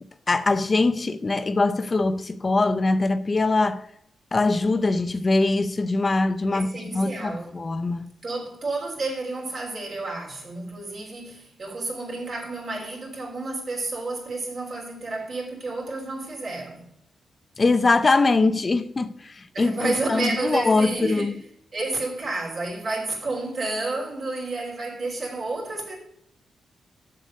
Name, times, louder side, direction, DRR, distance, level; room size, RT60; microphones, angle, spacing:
voice 1, 0.3-3.8 4.3-8.1 17.6-21.4, left 3 dB, 30° left, 0.5 m, -22 dB
voice 2, 6.5-7.6 8.2-16.9 19.5-21.3 21.7-26.0, right 2 dB, 50° right, 3.0 m, -30 dB
7.4 x 6.6 x 5.2 m
cardioid pair, 120°, 0 cm